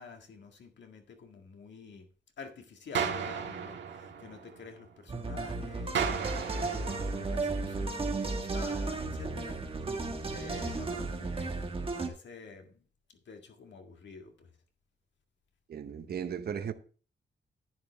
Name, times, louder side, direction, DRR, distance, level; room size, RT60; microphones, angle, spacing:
voice 1, 0.0-2.1 2.4-9.6 10.3-12.8 13.1-14.5, left 5 dB, 75° left, 1.8 m, -49 dB
sound 1, 2.9-5.0 5.9-8.0, right 7 dB, 80° right, 1.6 m, -35 dB
sound 2, 5.1-12.1, right 3 dB, 30° right, 1.4 m, -34 dB
voice 2, 15.7-16.7, right 8 dB, 55° right, 0.8 m, -36 dB
10.5 x 9.8 x 3.3 m
wide cardioid pair, 165°, 19 cm